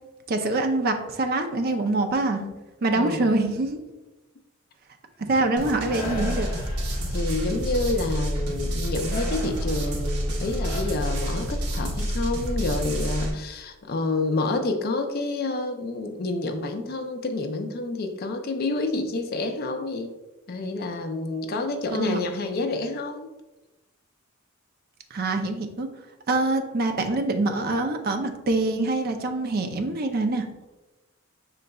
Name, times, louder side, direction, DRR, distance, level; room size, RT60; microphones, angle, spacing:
voice 1, 0.3-2.4 2.8-3.8 5.2-6.5 21.9-22.2 25.1-25.9 26.3-30.5, right 2 dB, 45° right, 6 dB, 0.4 m, -25 dB
sound 1, 5.6-13.3, equal, 85° right, 0.8 m, -28 dB
sound 2, 5.9-7.4 9.1-11.8, left 1 dB, 30° left, 1.2 m, -38 dB
voice 2, 7.1-20.1 20.5-23.3, left 2 dB, 45° left, 6 dB, 0.4 m, -28 dB
5.2 x 3.8 x 2.3 m, 1.1 s
head